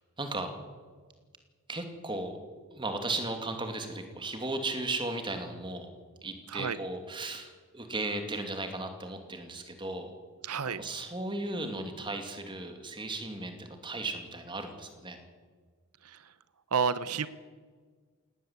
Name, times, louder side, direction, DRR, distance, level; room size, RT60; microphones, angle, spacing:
voice 1, 0.2-0.5 1.7-2.4 2.7-5.9 6.2-10.1 10.6-15.2, right 2 dB, 20° right, 5 dB, 2.6 m, -36 dB
voice 2, 10.4-10.8 16.0-16.2 16.7-17.3, right 6 dB, 90° right, 15 dB, 0.8 m, -30 dB
19.5 x 17.5 x 8.2 m, 1.5 s
head